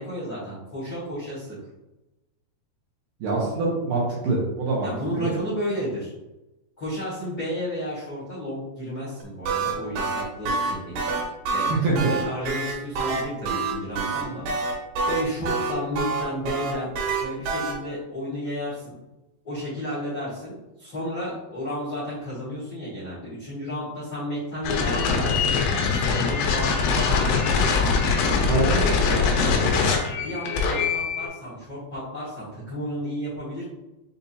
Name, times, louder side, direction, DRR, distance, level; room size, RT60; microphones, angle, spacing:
voice 1, 0.0-1.6 4.8-6.1 6.8-14.8 15.0-16.9 17.2-18.9 19.4-27.8 28.5-29.7 30.2-33.6, equal, 70° left, -10 dB, 0.9 m, -32 dB
voice 2, 3.2-4.9 5.2-5.3 11.8-12.1 28.4-28.8, right 3 dB, 70° right, -5 dB, 2.2 m, -24 dB
sound 1, 9.2-17.7, right 4 dB, 90° right, 3.2 m, -26 dB
sound 2, 24.6-31.3, left 5 dB, 85° left, 2.9 m, -22 dB
6.8 x 2.7 x 2.8 m, 1.0 s
omnidirectional pair, 4.7 m